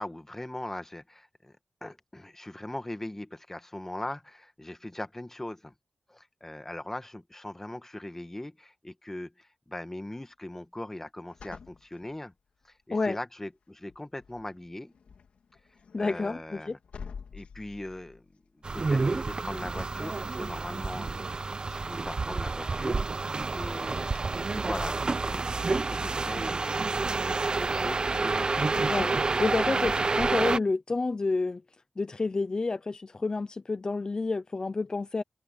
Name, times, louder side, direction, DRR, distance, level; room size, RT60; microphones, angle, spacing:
voice 1, 0.0-5.7 6.1-12.3 12.6-14.9 16.0-16.8 17.3-18.3 18.5-24.1 24.4-26.8 27.2-28.7, left 1 dB, 15° left, 1.8 m, -40 dB
sound 1, 11.3-12.8 13.3-13.6 13.9-24.2, left 6 dB, 90° left, 3.1 m, -51 dB
voice 2, 15.9-16.8 28.7-31.6 32.0-35.2, left 3 dB, 40° left, 0.7 m, -29 dB
sound 2, 18.6-30.6, right 3 dB, 45° right, 0.9 m, -29 dB
open air
wide cardioid pair, 75°, 2 cm